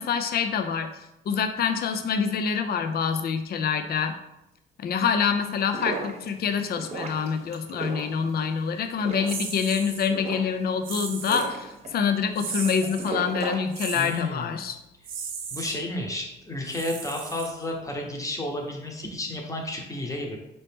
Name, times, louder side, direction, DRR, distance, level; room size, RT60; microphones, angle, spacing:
voice 1, 0.0-4.2 4.8-14.8, left 6 dB, 50° left, 8 dB, 0.5 m, -26 dB
sound 1, 5.5-14.3, right 3 dB, 30° right, 0.9 m, -37 dB
sound 2, 9.3-10.1 10.8-11.5 12.3-13.1 13.7-14.2 15.0-15.8 16.6-17.8, right 6 dB, 85° right, 0.6 m, -36 dB
voice 2, 13.9-14.5 15.5-20.4, left 1 dB, 15° left, 1 dB, 0.9 m, -32 dB
4.0 x 2.9 x 3.5 m, 0.90 s
cardioid pair, 90°, 20 cm